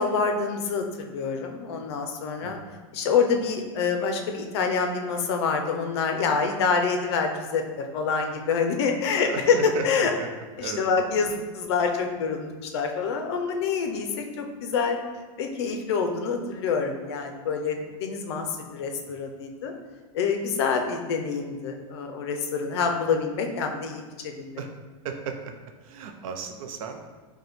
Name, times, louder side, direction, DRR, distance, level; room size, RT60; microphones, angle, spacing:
voice 1, 0.0-2.6 2.9-10.1 10.6-15.0 15.4-19.7 20.1-24.6, left 5 dB, 50° left, 4 dB, 0.5 m, -26 dB
voice 2, 9.2-9.9 10.2-10.3 10.6-10.9 24.6-24.7 25.0-25.5 25.8-27.1, right 5 dB, 75° right, 4 dB, 0.4 m, -34 dB
4.9 x 2.2 x 3.1 m, 1.3 s
supercardioid pair, 180°, 17 cm